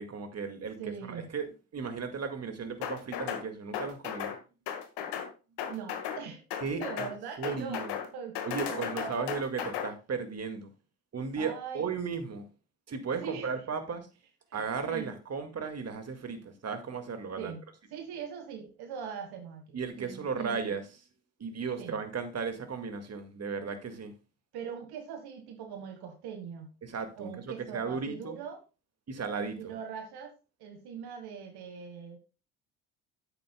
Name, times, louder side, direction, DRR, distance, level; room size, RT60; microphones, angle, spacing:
voice 1, 0.0-1.5 1.7-4.3 6.6-6.8 7.4-7.9 8.4-10.7 11.1-12.5 12.9-14.1 14.5-17.5 19.7-20.8 21.4-24.1 26.8-28.4 29.1-29.7, right 5 dB, 35° right, 2.0 m, -35 dB
voice 2, 0.8-1.3 5.7-6.4 6.8-7.9 8.1-9.3 9.6-9.8 11.4-11.9 13.2-13.5 14.5-15.1 17.4-17.6 17.9-20.7 21.8-22.0 24.5-26.7 27.2-28.6 29.6-30.3 30.6-32.2, right 7 dB, 60° right, 1.6 m, -41 dB
sound 1, 2.8-3.4 3.7-4.4 4.7-5.3 5.6-6.2 6.5-7.1 7.4-8.1 8.3-9.9, left 9 dB, 65° left, 1.7 m, -35 dB
11.0 x 8.6 x 2.2 m
hypercardioid pair, 55°, 44 cm